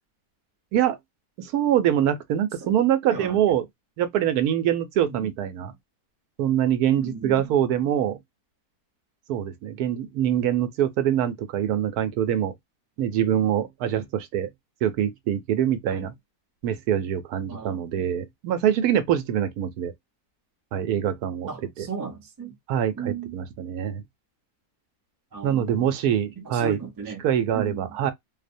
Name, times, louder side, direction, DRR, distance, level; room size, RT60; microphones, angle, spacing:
voice 1, 1.4-3.7 4.0-5.7 6.4-8.2 9.3-12.5 13.0-14.5 14.8-16.1 16.6-19.9 20.7-21.5 21.8-21.9 22.7-24.0 25.4-26.8 27.2-28.1, right 10 dB, 80° right, 1.1 m, -24 dB
voice 2, 3.1-3.5 5.1-5.3 7.0-7.4 15.9-16.1 17.5-18.0 21.5-22.6 23.0-23.4 25.3-25.9 26.4-27.2 27.5-28.0, right 6 dB, 25° right, 0.4 m, -36 dB
2.7 x 2.0 x 2.5 m
omnidirectional pair, 1.6 m